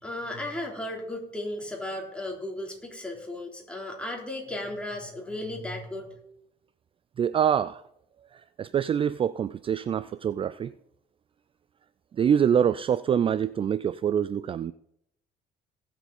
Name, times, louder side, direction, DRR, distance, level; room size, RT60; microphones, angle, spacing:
voice 1, 0.0-6.1, left 1 dB, 5° left, -1 dB, 3.6 m, -35 dB
voice 2, 7.2-7.8 8.3-10.7 12.1-14.7, right 8 dB, 30° right, 16 dB, 0.3 m, -25 dB
18.5 x 7.4 x 4.2 m, 0.75 s
cardioid pair, 110°, 17 cm